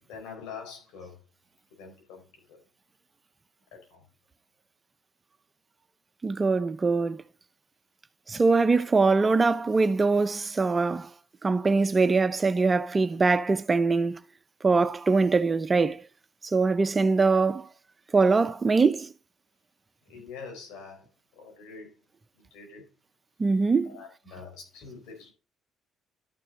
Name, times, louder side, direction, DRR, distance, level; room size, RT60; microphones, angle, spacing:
voice 1, 0.1-1.2 1.7-2.6 3.7-4.0 20.0-21.9 22.4-22.9 23.8-25.3, left 5 dB, 75° left, 4.4 m, -45 dB
voice 2, 6.2-7.2 8.3-11.1 11.4-14.2 14.6-16.0 16.5-17.7 18.1-19.1 23.4-23.9, right 4 dB, 30° right, 0.8 m, -23 dB
12.5 x 6.5 x 3.9 m
hypercardioid pair, 60°, 0 cm